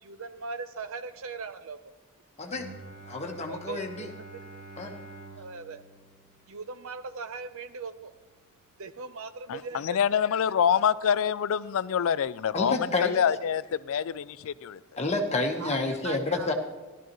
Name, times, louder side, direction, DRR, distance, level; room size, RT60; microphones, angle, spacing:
voice 1, 0.0-1.8 3.4-4.6 5.4-5.8 6.5-8.1 8.8-10.2 15.6-16.5, right 4 dB, 70° right, 11 dB, 0.7 m, -40 dB
Bowed string instrument, 2.5-8.2, right 3 dB, 90° right, 2.3 m, -48 dB
voice 2, 3.1-4.1 4.8-4.9 12.5-13.2 15.0-16.5, left 3 dB, 30° left, 2 dB, 1.2 m, -29 dB
voice 3, 9.5-12.7 13.0-14.8, left 8 dB, 70° left, 17 dB, 0.4 m, -26 dB
16.0 x 12.5 x 3.1 m, 1.2 s
head